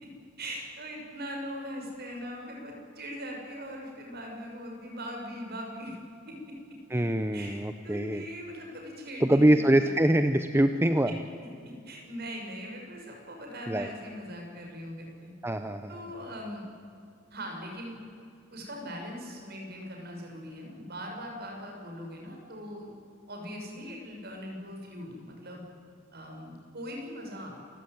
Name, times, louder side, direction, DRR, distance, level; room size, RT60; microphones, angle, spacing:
voice 1, 0.4-5.9 6.3-6.4 7.3-10.2 11.6-15.3 15.9-16.6 17.3-18.0 18.5-22.9 23.3-25.7 26.1-27.7, equal, 50° right, 1 dB, 6.4 m, -40 dB
voice 2, 6.9-8.2 9.2-11.1 13.7-13.9 15.4-16.0, right 1 dB, 10° right, 8 dB, 0.7 m, -24 dB
28.0 x 15.5 x 9.5 m, 2.5 s
head